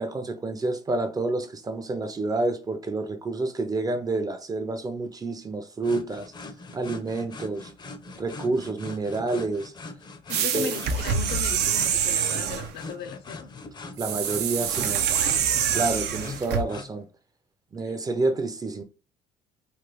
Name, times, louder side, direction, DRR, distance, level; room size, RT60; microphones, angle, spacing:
voice 1, 0.0-6.3 6.7-7.7 8.2-9.7 10.5-10.7 14.0-15.1 15.7-17.1 17.7-18.8, right 2 dB, 20° right, 0.4 m, -28 dB
sound 1, 5.8-16.9, left 3 dB, 25° left, 0.5 m, -42 dB
voice 2, 10.3-13.5, left 6 dB, 75° left, 0.6 m, -37 dB
sound 2, 10.3-12.7 14.0-16.6, right 8 dB, 75° right, 0.5 m, -26 dB
3.2 x 2.2 x 3.0 m
cardioid pair, 110°, 17 cm